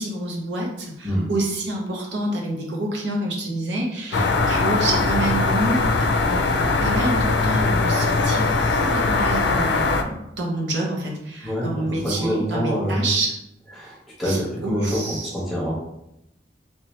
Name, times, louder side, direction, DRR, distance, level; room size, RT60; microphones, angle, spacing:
voice 1, 0.0-13.3 14.2-15.3, right 2 dB, 85° right, -1 dB, 1.0 m, -28 dB
sound 1, 4.1-10.0, left 3 dB, 80° left, 0.4 m, -21 dB
voice 2, 11.4-13.1 13.7-15.0 15.3-15.7, equal, ahead, -6 dB, 1.1 m, -26 dB
3.4 x 3.0 x 3.1 m, 0.84 s
head